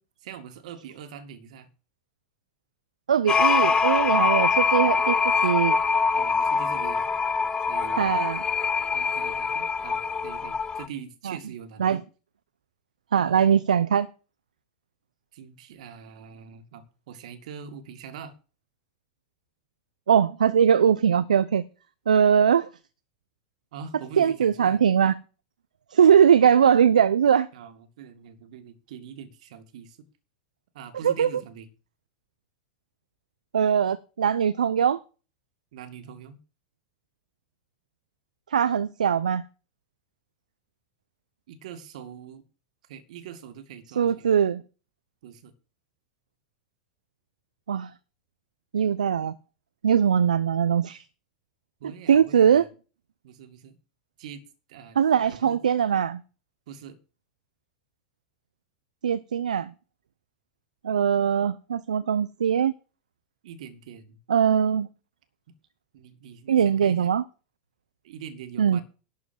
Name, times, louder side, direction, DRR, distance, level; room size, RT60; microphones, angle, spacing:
voice 1, 0.2-1.7 6.1-7.1 7.7-8.1 8.9-12.0 13.2-13.4 15.3-18.3 23.7-24.8 27.5-30.0 30.7-31.7 35.7-36.4 41.5-42.4 42.9-44.3 45.2-45.5 51.8-52.7 53.2-53.8 54.2-54.4 54.7-55.6 56.7-57.0 63.4-64.2 65.5-65.6 65.9-67.1 68.0-68.8, right 7 dB, 65° right, 2.1 m, -43 dB
voice 2, 3.1-5.8 8.0-8.4 11.3-11.4 11.8-12.0 13.1-14.1 20.1-21.6 22.1-22.7 24.2-25.1 25.9-27.5 31.0-31.3 33.5-35.0 38.5-39.4 44.0-44.6 47.7-47.9 48.7-49.3 49.8-51.0 52.1-52.7 55.0-56.2 59.0-59.7 60.8-62.7 64.3-64.9 66.5-67.2 68.6-68.8, right 8 dB, 80° right, 0.6 m, -21 dB
sound 1, 3.3-10.9, left 5 dB, 20° left, 0.7 m, -24 dB
12.0 x 5.0 x 7.6 m
hypercardioid pair, 90°, 4 cm